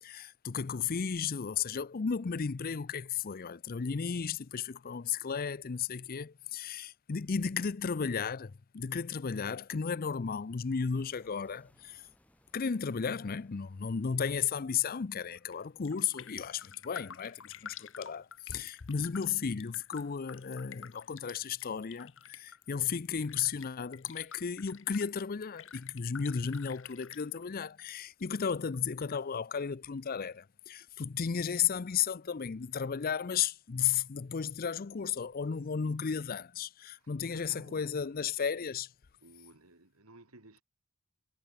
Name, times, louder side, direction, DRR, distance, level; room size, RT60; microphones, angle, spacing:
voice 1, 0.0-12.0 12.5-38.9, left 6 dB, 40° left, 0.5 m, -34 dB
sound 1, 11.0-17.2, equal, 5° left, 5.1 m, -70 dB
Raindrop, 15.4-15.6 15.8-27.9 28.2-29.2 29.6-29.7, left 8 dB, 60° left, 3.3 m, -50 dB
voice 2, 36.9-38.7 39.2-40.6, right 2 dB, 75° right, 3.4 m, -57 dB
head